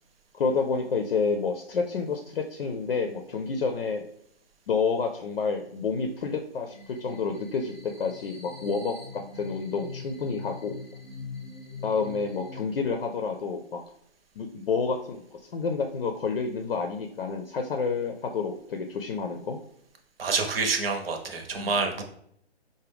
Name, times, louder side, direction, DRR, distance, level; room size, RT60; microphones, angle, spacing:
voice 1, 0.3-4.0 4.7-6.7 7.0-10.7 11.8-13.8 14.4-19.6 21.6-21.8, left 5 dB, 60° left, 4 dB, 0.5 m, -29 dB
sound 1, 6.7-12.6, left 3 dB, ahead, 0.7 m, -43 dB
voice 2, 20.2-22.0, right 4 dB, 60° right, 4 dB, 0.8 m, -27 dB
4.9 x 2.1 x 3.4 m, 0.67 s
hypercardioid pair, 150°, 32 cm